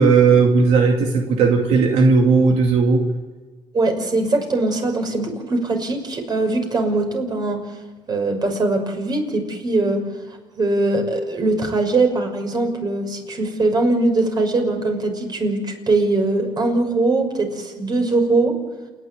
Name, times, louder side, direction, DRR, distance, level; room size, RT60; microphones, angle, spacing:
voice 1, 0.0-3.0, right 4 dB, 85° right, 1 dB, 2.4 m, -15 dB
voice 2, 3.7-7.6 8.1-10.0 10.6-18.5, right 2 dB, 40° right, 4 dB, 6.1 m, -21 dB
28.5 x 11.5 x 9.6 m, 1.3 s
cardioid pair, 85°, 11 cm